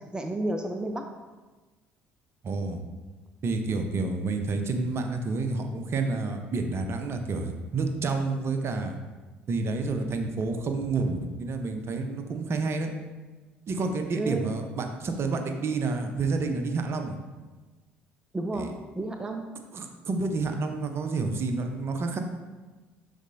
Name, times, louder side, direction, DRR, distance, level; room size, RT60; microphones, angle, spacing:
voice 1, 0.1-1.1 14.1-14.5 18.3-19.5, right 2 dB, 15° right, 4 dB, 0.5 m, -31 dB
voice 2, 2.4-2.8 3.4-9.0 9.5-12.9 13.7-17.2 18.5-18.7 19.7-22.2, right 3 dB, 45° right, 5 dB, 0.8 m, -29 dB
11.5 x 4.2 x 2.7 m, 1.3 s
figure-of-eight pair, 55°, 6 cm